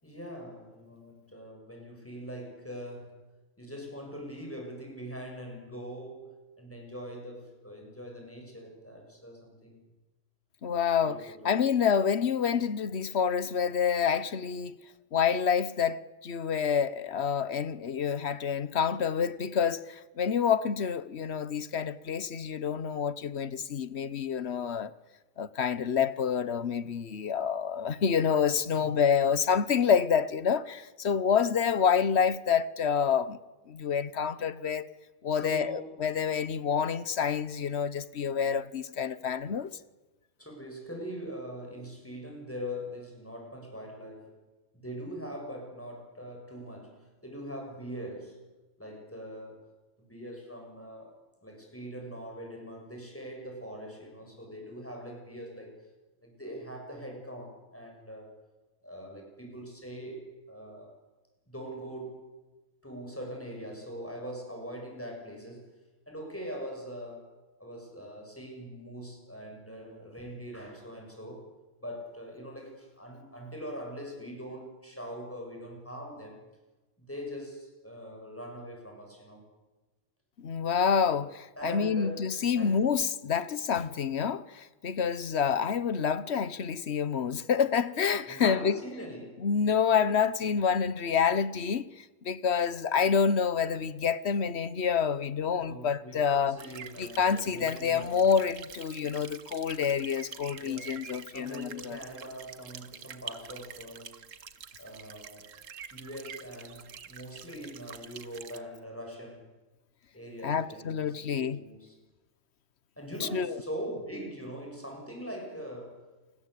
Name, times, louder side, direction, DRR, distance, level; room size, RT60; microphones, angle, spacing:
voice 1, 0.0-3.3 3.6-9.8 11.0-11.6 28.7-29.0 35.3-36.0 40.4-44.4 44.7-48.5 48.8-49.7 50.1-51.1 51.4-55.8 56.2-58.4 58.8-60.9 61.5-62.3 62.8-65.8 66.1-67.3 67.6-71.5 71.8-76.5 77.0-79.5 81.6-82.8 88.3-89.5 95.5-98.2 100.5-104.3 104.8-105.5 105.9-109.5 110.1-112.0 113.0-116.1, equal, 10° left, 7.7 m, -42 dB
voice 2, 10.6-14.8 15.1-24.9 25.4-33.4 33.7-34.9 35.2-39.7 80.4-88.8 89.4-96.6 97.0-102.0 110.4-111.6 113.2-113.5, left 7 dB, 60° left, 1.3 m, -28 dB
sound 1, 96.6-108.6, right 7 dB, 85° right, 1.5 m, -47 dB
28.5 x 21.5 x 8.5 m
omnidirectional pair, 1.3 m